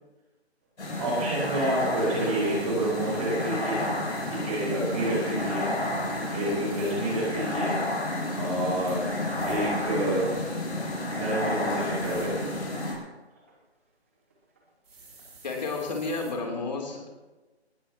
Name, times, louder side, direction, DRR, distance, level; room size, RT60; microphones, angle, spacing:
sound 1, 0.8-12.9, left 1 dB, 75° left, 7.1 m, -31 dB
voice 1, 1.0-3.8 4.3-5.7 6.3-7.8 8.3-9.2 9.4-10.3 11.1-12.7, right 1 dB, 35° right, -5 dB, 5.5 m, -28 dB
sound 2, 1.1-10.5 10.9-11.8 12.2-13.6 14.3-14.6 15.0-15.1, right 2 dB, 10° right, 1.0 m, -46 dB
sound 3, 4.1-4.4 6.7-7.0 9.4-9.7 12.0-12.3 14.8-16.3, right 3 dB, 65° right, 6.1 m, -49 dB
voice 2, 5.2-5.6 15.4-17.1, left 3 dB, 40° left, 1 dB, 3.3 m, -32 dB
20.0 x 19.5 x 3.0 m, 1.2 s
hypercardioid pair, 170°, 34 cm